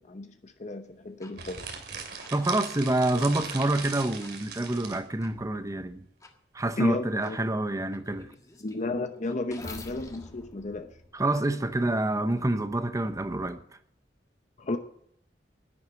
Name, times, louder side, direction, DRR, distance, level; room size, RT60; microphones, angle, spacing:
voice 1, 0.0-1.7 6.8-7.4 8.6-11.0 14.6-14.8, left 2 dB, 45° left, 0.8 m, -33 dB
sound 1, 1.2-1.3 2.2-2.3 3.2-3.3 4.2-4.3 5.2-5.3 6.2-6.3 7.2-7.3 7.9-11.8, left 2 dB, 20° left, 1.5 m, -48 dB
sound 2, 1.3-5.0, right 6 dB, 65° right, 2.5 m, -39 dB
voice 2, 2.3-6.0 6.5-8.3 11.1-13.6, right 2 dB, 20° right, 0.8 m, -27 dB
11.0 x 10.0 x 7.7 m
head